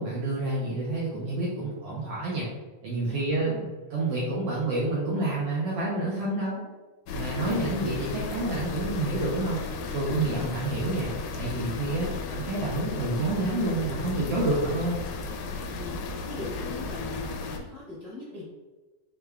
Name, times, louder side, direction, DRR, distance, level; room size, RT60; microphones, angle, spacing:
voice 1, 0.0-2.5 2.8-6.6 7.1-9.6 9.9-15.0, right 2 dB, 75° right, -6 dB, 1.4 m, -28 dB
sound 1, 7.1-17.6, left 4 dB, 80° left, 1.9 m, -34 dB
voice 2, 10.2-10.5 15.7-18.5, left 2 dB, 45° left, -11 dB, 0.7 m, -41 dB
5.0 x 3.3 x 2.3 m, 1.2 s
omnidirectional pair, 3.5 m